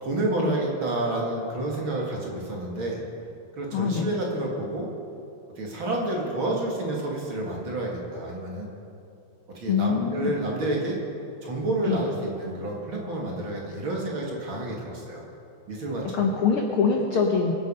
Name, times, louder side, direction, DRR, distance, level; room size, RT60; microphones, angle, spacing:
voice 1, 0.0-3.0 3.6-4.9 5.6-8.7 9.5-11.0 11.4-15.2 15.7-16.4, right 2 dB, 45° right, -2 dB, 2.4 m, -29 dB
voice 2, 3.7-4.1 9.7-10.3 11.8-12.0 16.1-17.5, left 5 dB, 70° left, 2 dB, 1.3 m, -24 dB
23.5 x 8.0 x 5.5 m, 2.6 s
omnidirectional pair, 3.6 m